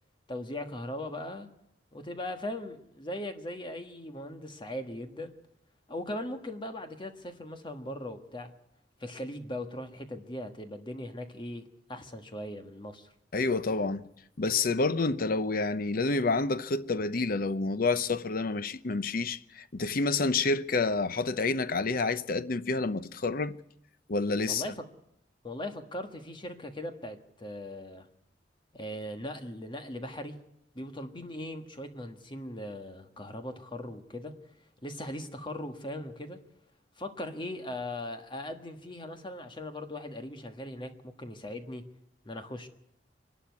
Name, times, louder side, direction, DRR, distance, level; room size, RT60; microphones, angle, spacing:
voice 1, 0.3-1.5 1.9-5.3 5.9-8.5 9.0-13.1 24.5-24.7 25.4-28.1 28.7-30.4 30.7-34.4 34.8-36.4 37.0-41.9 42.2-42.7, left 1 dB, 30° left, 1.5 m, -39 dB
voice 2, 13.3-14.1 14.4-23.5 24.1-24.7, left 3 dB, 55° left, 0.7 m, -28 dB
24.0 x 12.0 x 9.5 m
head